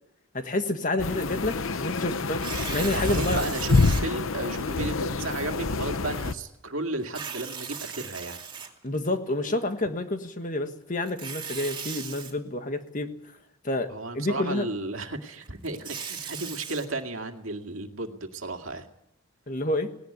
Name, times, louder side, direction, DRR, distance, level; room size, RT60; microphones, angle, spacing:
voice 1, 0.3-2.4 2.7-3.5 8.8-13.1 13.6-14.7 19.5-19.9, left 2 dB, 40° left, 7 dB, 1.6 m, -29 dB
sound 1, 1.0-6.3, left 3 dB, 70° left, 0.8 m, -27 dB
Tearing, 2.3-4.0 4.7-4.8 7.0-9.1 11.0-12.3 15.5-16.9, right 6 dB, 25° right, 2.8 m, -37 dB
voice 2, 2.8-8.4 13.9-18.9, right 2 dB, 70° right, 5 dB, 2.2 m, -34 dB
18.5 x 18.5 x 9.4 m, 0.82 s
head